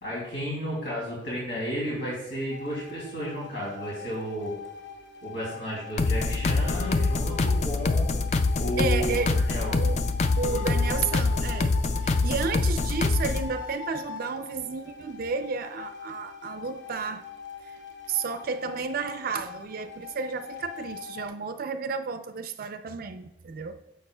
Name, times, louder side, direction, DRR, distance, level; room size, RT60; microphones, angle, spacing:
voice 1, 0.0-4.5 5.2-8.1 8.6-9.7, equal, 90° left, -6 dB, 2.7 m, -33 dB
sound 1, 2.5-21.3, left 6 dB, 65° left, 0.8 m, -42 dB
sound 2, 6.0-13.5, left 3 dB, 35° left, 0.3 m, -25 dB
voice 2, 8.8-10.0 10.4-11.7 12.0-17.2 17.6-17.8 18.1-23.8, right 5 dB, 50° right, 9 dB, 0.4 m, -32 dB
9.6 x 6.5 x 2.2 m, 0.86 s
head